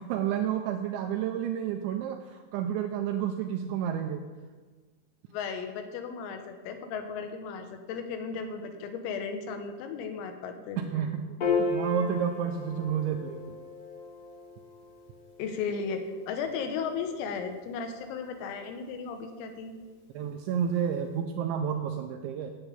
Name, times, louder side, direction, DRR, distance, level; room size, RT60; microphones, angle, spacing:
voice 1, 0.0-4.2 10.9-11.3 11.6-13.6 20.1-22.5, right 8 dB, 90° right, 4 dB, 2.7 m, -30 dB
voice 2, 5.3-11.0 15.4-19.8, left 5 dB, 85° left, 6 dB, 3.9 m, -35 dB
Piano, 11.4-18.0, left 4 dB, 70° left, 1.5 m, -35 dB
11.0 x 8.0 x 8.7 m, 1.4 s
omnidirectional pair, 6.0 m